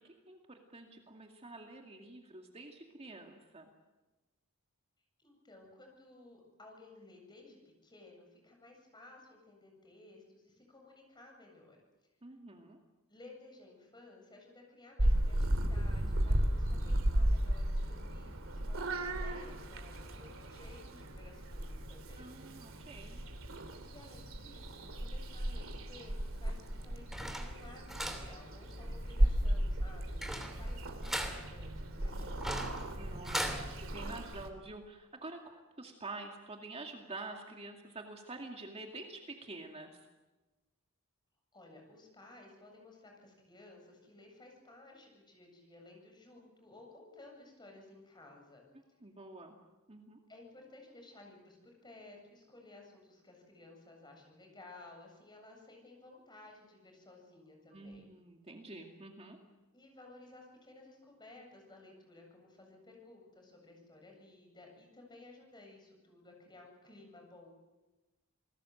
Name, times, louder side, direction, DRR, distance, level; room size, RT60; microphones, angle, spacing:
voice 1, 0.3-3.7 12.2-12.8 22.2-23.2 33.0-33.6 33.9-35.4 35.8-40.0 49.0-49.6 49.9-50.2 57.7-59.4, right 2 dB, 30° right, 3 dB, 2.3 m, -47 dB
voice 2, 5.2-11.8 13.1-22.3 23.8-32.8 41.5-48.6 50.3-58.1 59.7-67.6, left 2 dB, 20° left, 1 dB, 7.7 m, -56 dB
Purr / Meow, 15.0-34.5, right 1 dB, 65° right, 3.1 m, -35 dB
sound 1, 26.6-33.6, equal, ahead, 2.8 m, -41 dB
28.0 x 20.0 x 7.9 m, 1.1 s
head